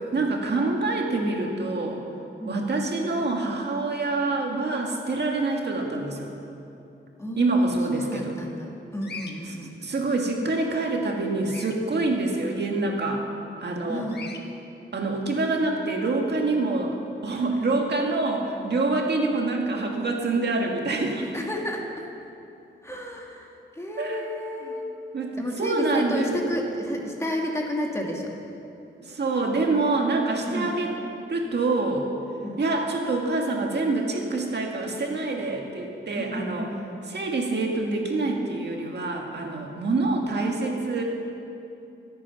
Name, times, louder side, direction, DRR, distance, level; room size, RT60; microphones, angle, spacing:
voice 1, 0.1-2.0 2.5-6.3 7.4-8.3 9.8-13.2 13.6-14.0 14.9-16.9 17.2-21.3 24.0-24.2 25.1-26.4 29.0-30.9 31.3-32.1 32.6-36.7 37.1-41.0, right 3 dB, 55° right, 1 dB, 1.8 m, -26 dB
voice 2, 7.2-9.7 13.9-14.2 17.5-17.8 21.3-22.1 22.8-24.9 25.4-28.3 30.5-30.7 32.4-32.6 36.1-36.9, equal, 15° left, 0 dB, 1.6 m, -31 dB
Bird vocalization bird call bird song, 9.0-9.3 11.4-11.8 14.1-14.4, left 4 dB, 55° left, 1.3 m, -39 dB
23.5 x 8.7 x 5.8 m, 2.8 s
wide cardioid pair, 165°, 21 cm